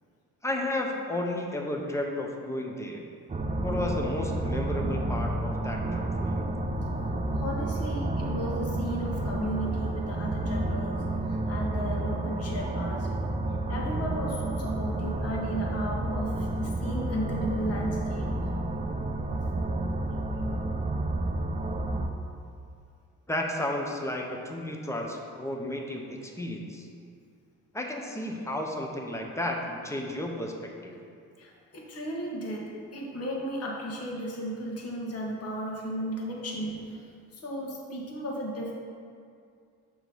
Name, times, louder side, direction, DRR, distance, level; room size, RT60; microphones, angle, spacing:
voice 1, 0.4-3.0 3.6-6.5 23.3-26.9 27.7-31.0, left 1 dB, 10° left, 0 dB, 0.7 m, -33 dB
sound 1, 3.3-22.1, right 2 dB, 25° right, 0.5 m, -30 dB
voice 2, 7.1-13.1 13.7-18.3 31.4-38.7, equal, 50° left, -2 dB, 1.3 m, -35 dB
6.2 x 3.1 x 5.4 m, 2.3 s
cardioid pair, 90°, 30 cm